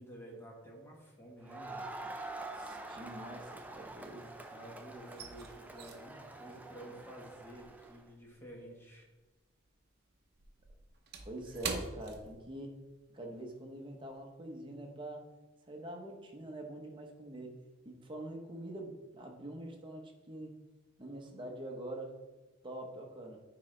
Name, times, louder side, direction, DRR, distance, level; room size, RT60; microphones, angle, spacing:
voice 1, 0.0-1.9 4.5-9.1, right 1 dB, 10° left, -2 dB, 1.4 m, -51 dB
Crowd, 1.4-8.0, right 2 dB, 10° right, 0.4 m, -46 dB
voice 2, 2.5-4.3 11.2-12.7 13.1-15.3 15.7-17.6 17.8-20.5 21.0-22.1 22.6-23.4, right 1 dB, 25° right, 2 dB, 0.9 m, -45 dB
sound 1, 2.5-4.4 4.7-9.4 9.7-13.0 13.3-13.5 14.0-14.2, right 4 dB, 50° right, 0.7 m, -46 dB
9.6 x 3.9 x 3.3 m, 1.2 s
head